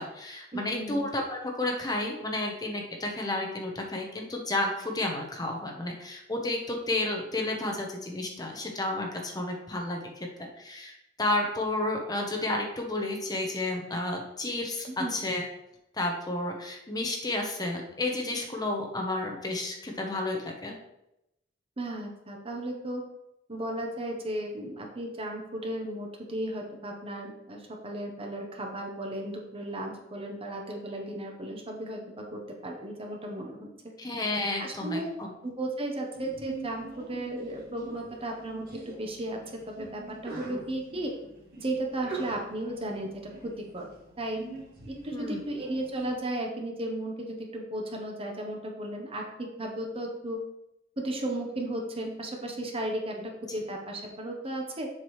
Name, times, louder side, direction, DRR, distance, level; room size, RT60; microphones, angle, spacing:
voice 1, 0.0-10.3 10.6-15.5 15.9-20.8 34.0-35.3 45.1-45.4, left 2 dB, 20° left, 1 dB, 1.0 m, -31 dB
voice 2, 0.5-1.1 15.0-15.1 21.8-23.0 23.5-33.7 34.6-35.1 35.4-41.1 41.6-43.9 44.2-44.4 44.9-50.4 51.0-54.9, right 1 dB, 30° right, 1 dB, 1.0 m, -35 dB
Sneeze, 36.1-46.1, right 3 dB, 55° right, 1.9 m, -44 dB
7.4 x 6.0 x 3.2 m, 0.86 s
head